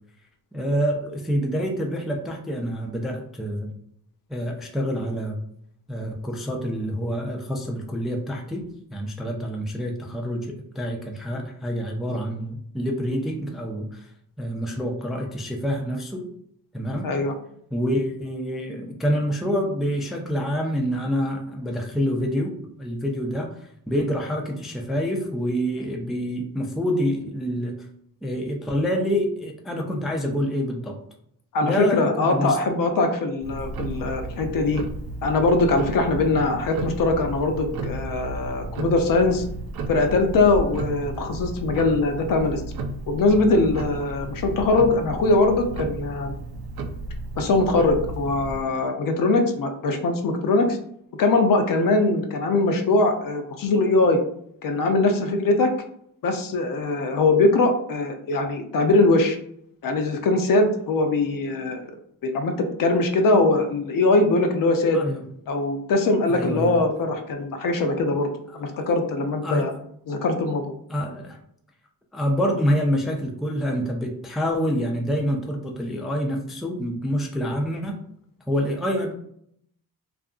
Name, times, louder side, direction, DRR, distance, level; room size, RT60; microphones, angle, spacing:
voice 1, 0.5-3.7 4.3-5.4 5.9-8.6 8.9-14.1 14.4-16.3 16.7-17.1 17.7-22.5 22.8-23.6 23.9-27.8 28.2-31.0 31.6-32.6 64.9-65.2 66.3-66.8 69.4-69.7 70.9-71.4 72.1-78.0 78.5-79.1, equal, ahead, 1 dB, 0.3 m, -27 dB
voice 2, 17.0-17.3 31.5-34.8 35.2-39.4 39.9-42.6 43.1-46.3 47.4-50.8 51.2-54.2 54.6-55.7 56.2-59.4 59.8-61.8 62.2-65.0 65.5-68.3 68.5-69.7 70.1-70.8, left 2 dB, 60° left, 5 dB, 0.5 m, -21 dB
Tick-tock, 33.4-48.6, right 2 dB, 75° right, 0.5 m, -33 dB
2.7 x 2.5 x 2.4 m, 0.68 s
cardioid pair, 100°, 38 cm